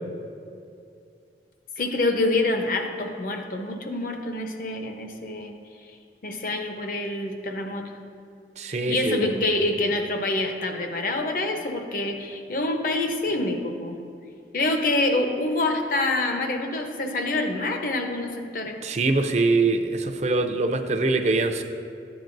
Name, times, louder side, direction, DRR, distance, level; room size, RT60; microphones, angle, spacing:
voice 1, 1.8-5.5 6.2-7.9 8.9-14.0 14.5-18.8, left 2 dB, 50° left, 4 dB, 0.8 m, -26 dB
voice 2, 8.6-9.4 18.8-21.6, right 3 dB, 40° right, 5 dB, 0.5 m, -23 dB
13.0 x 8.8 x 2.6 m, 2.4 s
head